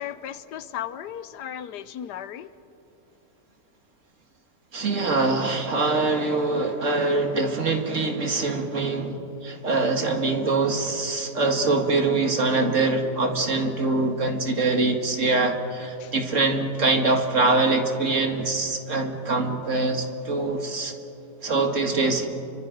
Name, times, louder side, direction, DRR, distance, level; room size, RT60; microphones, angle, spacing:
voice 1, 0.0-2.5 16.0-16.1, left 10 dB, 85° left, 14 dB, 1.3 m, -35 dB
voice 2, 4.7-20.9 21.4-22.3, right 3 dB, 50° right, 4 dB, 2.2 m, -24 dB
30.0 x 24.5 x 5.3 m, 2.9 s
omnidirectional pair, 1.7 m